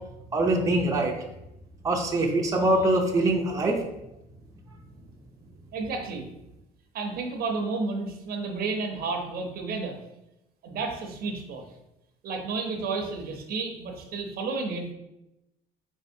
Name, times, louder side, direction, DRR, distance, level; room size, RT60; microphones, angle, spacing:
voice 1, 0.3-1.1 1.8-3.8, right 2 dB, 20° right, 0 dB, 0.6 m, -23 dB
voice 2, 5.7-6.3 6.9-10.0 10.6-11.6 12.2-14.9, right 4 dB, 65° right, 3 dB, 0.7 m, -31 dB
4.4 x 3.3 x 2.7 m, 0.89 s
cardioid pair, 110°, 17 cm